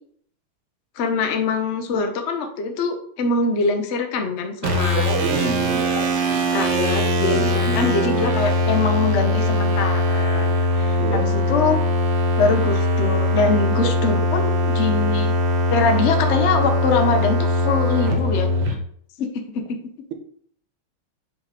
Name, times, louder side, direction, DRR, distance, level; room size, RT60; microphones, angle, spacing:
voice 1, 1.0-5.1 5.9-6.1 6.5-11.8 12.4-15.3 15.7-18.5 19.2-19.8, left 4 dB, 75° left, 5 dB, 0.6 m, -23 dB
sound 1, 4.6-18.7, left 1 dB, 65° right, 1.5 m, -21 dB
voice 2, 5.0-6.6 7.3-7.9 11.0-11.3 14.0-14.5, right 7 dB, 85° right, 6 dB, 1.7 m, -29 dB
7.2 x 4.2 x 3.4 m, 0.62 s
omnidirectional pair, 2.4 m